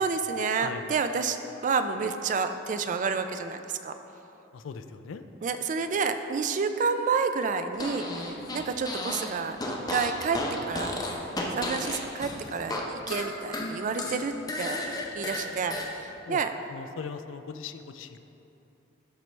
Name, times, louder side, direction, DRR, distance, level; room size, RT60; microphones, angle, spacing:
voice 1, 0.0-1.4 1.6-3.9 5.4-8.1 8.5-9.6 9.9-10.4 10.7-11.0 11.6-14.8 15.2-16.5, right 5 dB, 40° right, 9 dB, 0.3 m, -29 dB
voice 2, 0.6-0.9 4.5-5.2 15.4-15.8 16.3-16.4 16.7-18.2, left 5 dB, 85° left, 9 dB, 0.4 m, -40 dB
Fart, 7.7-9.3 9.6-12.8 13.1-15.9, left 1 dB, 20° left, 0.7 m, -33 dB
12.5 x 4.5 x 3.2 m, 2.9 s
head